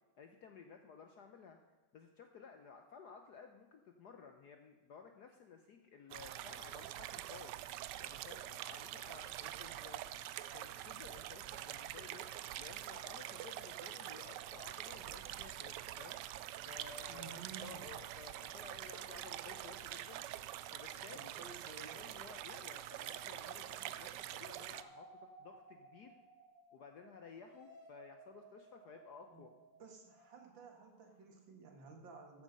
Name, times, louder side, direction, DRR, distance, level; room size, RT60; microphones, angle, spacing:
voice 1, 0.2-1.6 1.9-7.5 8.0-10.0 10.5-12.3 12.6-16.2 16.6-20.2 20.7-26.1 26.7-29.5, left 6 dB, 60° left, 5 dB, 1.2 m, -55 dB
sound 1, 6.1-24.8, right 13 dB, 80° right, 0.9 m, -46 dB
voice 2, 17.1-17.9 21.1-22.0 29.3-29.5 29.8-32.4, right 5 dB, 60° right, 3 dB, 2.5 m, -54 dB
sound 2, 22.9-31.1, right 2 dB, 20° right, 3.7 m, -61 dB
14.0 x 8.1 x 5.4 m, 1.3 s
omnidirectional pair, 2.4 m